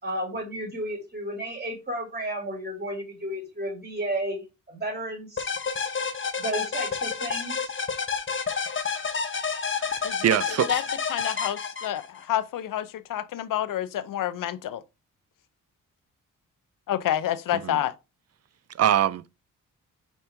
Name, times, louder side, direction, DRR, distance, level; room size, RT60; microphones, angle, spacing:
voice 1, 0.0-5.5 6.4-7.7, right 1 dB, 25° right, 3.3 m, -33 dB
sound 1, 5.4-12.2, left 5 dB, 35° left, 1.1 m, -29 dB
voice 2, 9.8-10.7 17.5-17.8 18.8-19.3, right 10 dB, 45° right, 0.5 m, -24 dB
voice 3, 11.1-14.8 16.9-17.9, left 12 dB, 70° left, 0.7 m, -28 dB
5.3 x 4.3 x 4.6 m
supercardioid pair, 50°, 34 cm